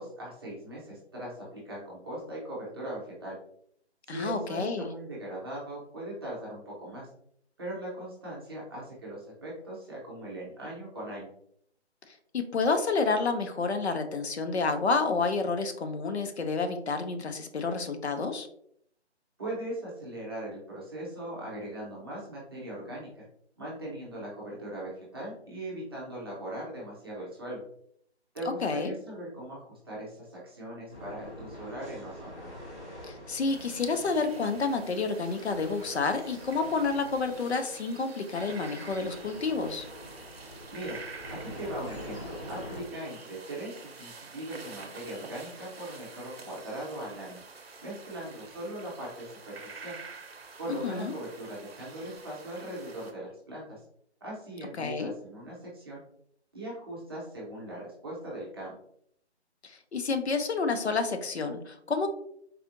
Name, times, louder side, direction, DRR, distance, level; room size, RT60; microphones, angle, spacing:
voice 1, 0.0-3.4 4.1-7.1 7.6-11.3 19.4-23.2 23.6-27.6 28.3-32.3 40.7-41.0 41.3-47.4 47.8-50.0 50.6-53.8 54.2-56.0 56.5-58.7, right 1 dB, 20° right, -6 dB, 0.8 m, -39 dB
voice 2, 4.1-4.9 12.1-18.5 28.6-28.9 33.0-39.9 50.7-51.1 54.8-55.1 59.6-62.1, left 4 dB, 70° left, 8 dB, 0.7 m, -29 dB
sound 1, 30.9-42.8, equal, 15° left, 1.1 m, -45 dB
sound 2, 33.5-53.1, right 4 dB, 60° right, 0.7 m, -48 dB
4.1 x 2.7 x 2.5 m, 0.68 s
figure-of-eight pair, 155°, 34 cm